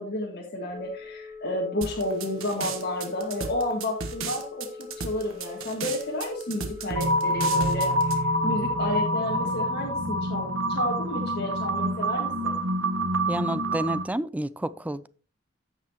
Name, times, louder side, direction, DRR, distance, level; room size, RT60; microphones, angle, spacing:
voice 1, 0.0-4.7 5.0-12.5, left 1 dB, 55° left, 1.7 m, -31 dB
Telephone, 0.7-9.0, left 4 dB, 30° left, 2.3 m, -42 dB
sound 1, 1.8-8.2, right 5 dB, 90° right, 1.4 m, -35 dB
sound 2, 7.0-14.1, equal, 70° right, 1.1 m, -26 dB
voice 2, 13.3-15.1, right 1 dB, 5° right, 0.3 m, -30 dB
15.0 x 5.7 x 2.9 m
head